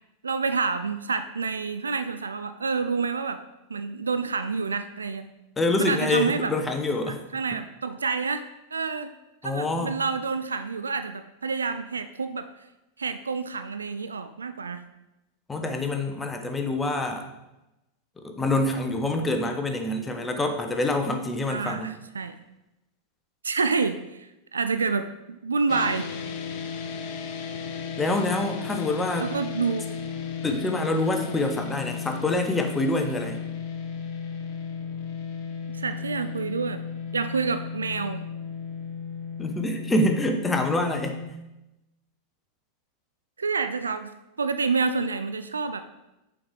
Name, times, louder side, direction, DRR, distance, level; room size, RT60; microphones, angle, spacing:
voice 1, 0.2-3.4 3.7-5.3 5.8-6.5 7.3-8.5 8.7-9.1 9.4-12.5 13.0-14.8 21.5-22.4 23.4-26.1 29.2-29.9 35.7-36.8 37.1-38.2 43.4-44.1 44.4-45.9, right 4 dB, 75° right, 10 dB, 0.3 m, -28 dB
voice 2, 5.6-7.2 7.5-7.6 9.4-9.9 15.5-17.3 18.2-21.9 28.0-29.3 30.4-33.4 39.4-41.2, left 2 dB, 10° left, 4 dB, 0.8 m, -26 dB
sound 1, 25.7-41.3, left 6 dB, 45° left, 0.6 m, -35 dB
6.2 x 4.7 x 3.7 m, 0.95 s
figure-of-eight pair, 90°, 0 cm